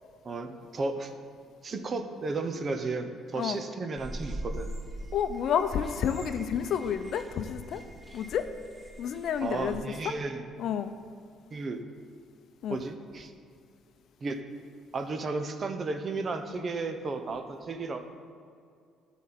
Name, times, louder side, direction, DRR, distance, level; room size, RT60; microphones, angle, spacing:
voice 1, 0.2-1.1 1.6-4.7 9.4-10.4 11.5-11.8 12.7-13.3 14.2-14.4 14.9-18.0, right 3 dB, 40° right, 8 dB, 0.9 m, -33 dB
sound 1, 4.0-9.8, right 1 dB, 20° right, 1.1 m, -42 dB
voice 2, 5.1-7.8 8.1-8.5 9.0-9.8 10.6-10.9 12.6-12.8, left 8 dB, 65° left, 10 dB, 0.6 m, -30 dB
12.0 x 4.2 x 7.7 m, 2.4 s
supercardioid pair, 70°, 0 cm